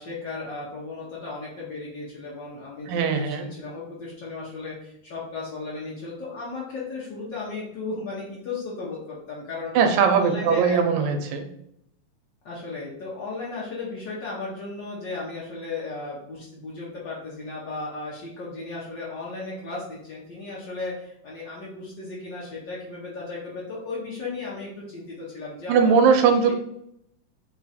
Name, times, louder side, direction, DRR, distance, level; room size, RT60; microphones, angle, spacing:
voice 1, 0.0-9.7 10.1-11.2 12.4-25.9 26.2-26.5, left 3 dB, 80° left, -6 dB, 1.0 m, -35 dB
voice 2, 2.9-3.5 9.8-11.5 25.7-26.5, right 6 dB, 80° right, 5 dB, 2.0 m, -20 dB
4.7 x 2.4 x 4.1 m, 0.75 s
omnidirectional pair, 3.3 m